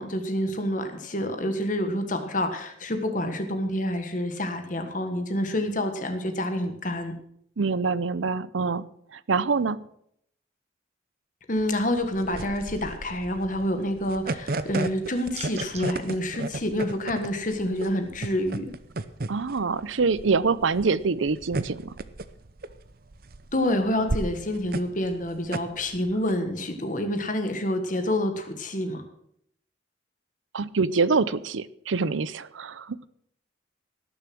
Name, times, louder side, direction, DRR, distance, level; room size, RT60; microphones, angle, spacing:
voice 1, 0.0-7.1 11.5-18.7 23.5-29.0, left 1 dB, 45° left, 7 dB, 1.4 m, -28 dB
voice 2, 7.6-8.9 9.1-9.8 19.3-21.9 30.5-33.1, right 4 dB, 90° right, 18 dB, 0.6 m, -25 dB
sound 1, 11.6-26.3, right 2 dB, 50° right, 0.7 m, -34 dB
sound 2, 15.3-15.9, right 5 dB, 35° right, 1.7 m, -39 dB
18.5 x 7.0 x 6.2 m, 0.71 s
head